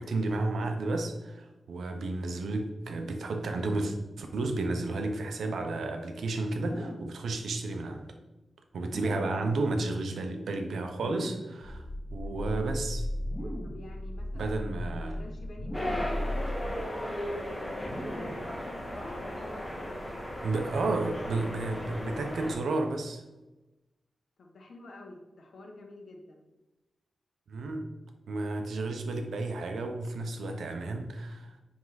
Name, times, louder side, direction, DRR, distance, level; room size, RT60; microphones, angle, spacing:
voice 1, 0.0-8.1 8.7-11.8 12.1-13.1 14.3-15.2 20.4-23.2 27.5-27.9 28.3-31.6, right 2 dB, 90° right, 5 dB, 0.9 m, -32 dB
sound 1, 6.5-7.2 8.7-9.5 10.9-11.6 13.2-13.9 15.5-16.2 17.8-18.5, equal, ahead, 2.3 m, -41 dB
sound 2, 11.6-16.9, left 1 dB, 45° left, 1.3 m, -36 dB
voice 2, 13.6-14.5 15.0-17.8 18.2-20.1 24.4-26.4, left 2 dB, 70° left, 2 dB, 1.3 m, -49 dB
sound 3, 15.7-22.6, equal, 15° left, 1.4 m, -36 dB
9.6 x 3.7 x 4.1 m, 1.1 s
wide cardioid pair, 120°, 0 cm